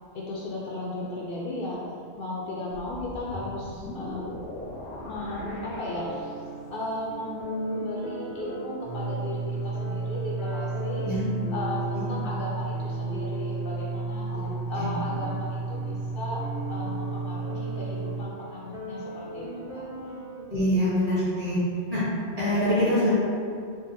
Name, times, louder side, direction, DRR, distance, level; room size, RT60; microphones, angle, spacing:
voice 1, 0.1-1.8 2.2-4.4 5.0-6.3 6.7-11.1 11.5-14.3 14.7-16.4 16.7-19.8, left 1 dB, 60° left, -5 dB, 0.7 m, -35 dB
sound 1, 2.7-6.7, left 1 dB, 80° left, 1.0 m, -40 dB
sound 2, 5.4-20.4, right 1 dB, 5° right, 0.6 m, -39 dB
sound 3, 8.8-18.2, right 3 dB, 70° right, 1.2 m, -32 dB
voice 2, 20.5-21.6 21.9-22.0 22.4-23.1, equal, 35° right, -10 dB, 1.4 m, -24 dB
3.8 x 2.1 x 4.0 m, 2.4 s
omnidirectional pair, 1.1 m